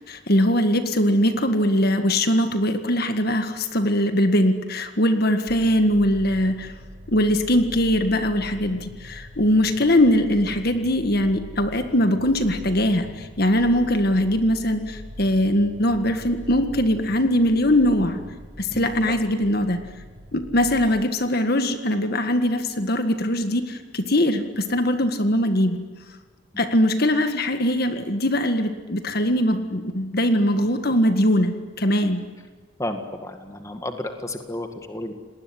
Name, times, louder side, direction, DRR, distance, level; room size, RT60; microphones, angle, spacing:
voice 1, 0.1-6.7 7.1-18.2 18.6-19.8 20.3-25.8 26.6-32.3, left 1 dB, 45° left, 7 dB, 1.8 m, -21 dB
sound 1, 5.5-20.9, equal, 50° right, 6.6 m, -42 dB
voice 2, 32.8-35.1, left 1 dB, 15° left, 6 dB, 1.8 m, -32 dB
29.5 x 19.5 x 9.9 m, 1.4 s
head